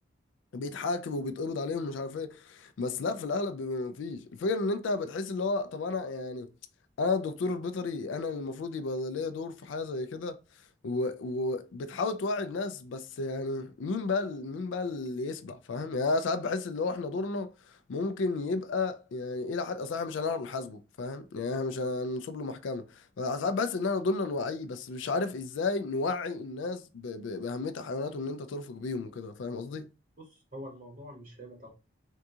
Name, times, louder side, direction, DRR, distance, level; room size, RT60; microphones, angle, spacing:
voice 1, 0.5-6.5 7.0-10.4 10.8-17.5 17.9-29.9, left 3 dB, 75° left, 0.4 m, -32 dB
voice 2, 30.2-31.7, equal, 45° right, 0.7 m, -45 dB
3.6 x 2.3 x 2.7 m
head